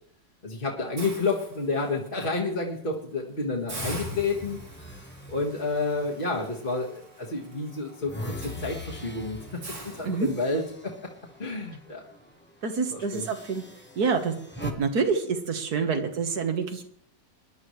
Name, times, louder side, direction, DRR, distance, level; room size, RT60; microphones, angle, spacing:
voice 1, 0.4-4.6 4.9-5.0 5.3-10.9 11.4-12.0 12.9-13.3, left 3 dB, 30° left, -3 dB, 1.8 m, -30 dB
Hiss, 1.0-2.1 2.6-2.8 3.1-3.2 3.7-10.8, right 2 dB, 90° right, 3.9 m, -44 dB
sound 1, 3.6-7.0 7.4-11.8 12.1-12.3 13.1-14.7, left 1 dB, 5° left, 1.0 m, -41 dB
voice 2, 12.6-13.6 14.0-14.3 14.6-16.8, right 5 dB, 60° right, 6 dB, 1.9 m, -27 dB
22.0 x 11.0 x 3.2 m, 0.65 s
omnidirectional pair, 1.9 m